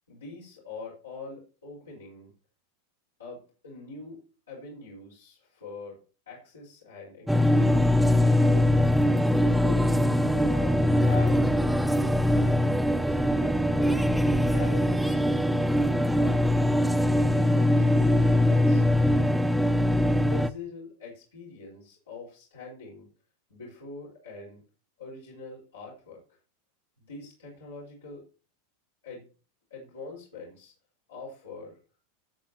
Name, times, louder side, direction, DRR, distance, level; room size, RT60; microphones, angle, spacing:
voice 1, 0.1-2.3 3.2-6.0 6.2-7.7 8.2-8.9 9.3-11.4 11.7-14.0 14.4-15.2 16.1-16.5 17.1-19.2 20.1-23.1 23.5-24.6 25.0-26.4 27.0-28.3 29.0-29.3 29.7-30.7 31.1-31.8, left 4 dB, 90° left, -5 dB, 5.1 m, -44 dB
sound 1, 7.3-20.5, left 1 dB, ahead, 0.9 m, -22 dB
16.0 x 7.5 x 2.9 m, 0.35 s
hypercardioid pair, 95°, 0 cm